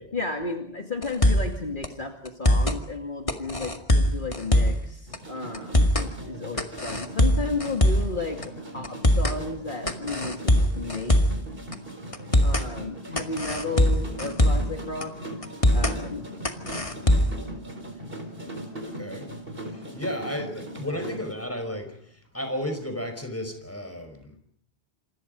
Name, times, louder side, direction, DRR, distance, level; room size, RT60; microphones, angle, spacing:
voice 1, 0.0-11.2 12.4-15.1 15.7-16.3, left 3 dB, 50° left, 3 dB, 2.5 m, -33 dB
sound 1, 1.0-1.5 1.8-1.9 2.2-2.8 3.3-4.8 5.1-5.2 5.5-6.1 6.6-8.1 8.4-8.5 8.8-9.4 9.9-11.4 11.7-11.8 12.1-12.7 13.2-14.7 15.0-15.1 15.4-16.0 16.4-17.4, left 1 dB, 30° left, 2.1 m, -21 dB
sound 2, 5.1-21.3, right 1 dB, 60° right, 4.3 m, -39 dB
voice 2, 18.9-19.3 19.7-24.4, left 1 dB, 15° left, 7 dB, 5.1 m, -34 dB
29.0 x 27.5 x 5.3 m, 0.62 s
omnidirectional pair, 1.1 m